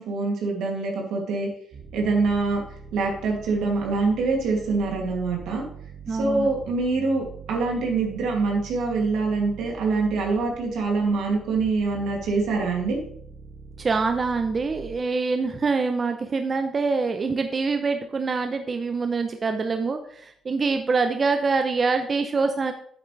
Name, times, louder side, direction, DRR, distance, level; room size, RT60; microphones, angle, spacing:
voice 1, 0.0-1.5 1.9-2.6 2.9-5.6 6.1-13.0, right 3 dB, 85° right, 0 dB, 2.5 m, -25 dB
sound 1, 1.7-15.0, right 5 dB, 60° right, 2.1 m, -43 dB
voice 2, 6.1-6.5 13.8-22.7, right 4 dB, 35° right, 7 dB, 0.7 m, -25 dB
8.9 x 8.0 x 3.3 m, 0.64 s
cardioid pair, 90°, 0 cm